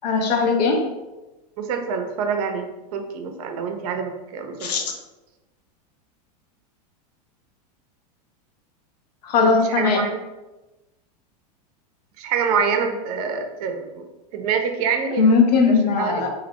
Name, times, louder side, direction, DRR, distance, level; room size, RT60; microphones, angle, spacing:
voice 1, 0.0-0.9 4.6-4.8 9.2-10.0 15.2-16.3, left 4 dB, 80° left, 3 dB, 0.6 m, -19 dB
voice 2, 1.6-4.7 9.4-10.2 12.2-14.0 14.3-15.3 15.7-16.3, right 6 dB, 65° right, 5 dB, 0.5 m, -26 dB
2.5 x 2.0 x 2.9 m, 1.1 s
supercardioid pair, 125°, 21 cm